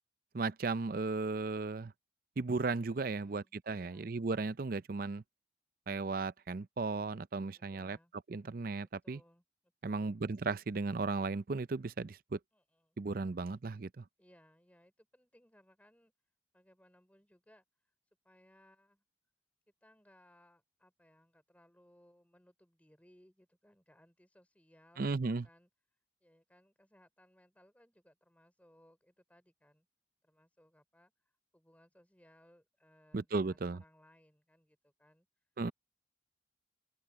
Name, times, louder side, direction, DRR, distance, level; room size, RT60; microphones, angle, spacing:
voice 1, 0.3-1.9 2.4-5.2 5.9-8.0 8.3-9.2 9.8-12.4 13.0-14.0 25.0-25.4 33.1-33.8 35.6-35.7, right 3 dB, 45° right, 0.5 m, -35 dB
voice 2, 3.0-4.1 7.5-8.1 9.0-10.2 12.5-13.0 14.2-16.1 16.5-17.6 18.2-19.0 19.8-25.7 26.2-29.9 30.2-35.3, equal, 10° left, 4.0 m, -66 dB
head